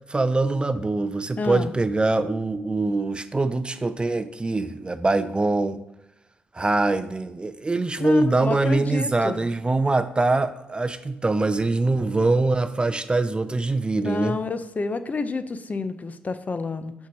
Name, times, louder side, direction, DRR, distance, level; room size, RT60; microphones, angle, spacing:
voice 1, 0.1-5.8 6.5-14.4, right 3 dB, 25° right, 11 dB, 0.5 m, -23 dB
voice 2, 1.4-1.7 8.0-9.5 13.9-16.9, left 4 dB, 40° left, 11 dB, 0.6 m, -29 dB
5.7 x 4.6 x 5.9 m, 0.87 s
supercardioid pair, 60°, 4 cm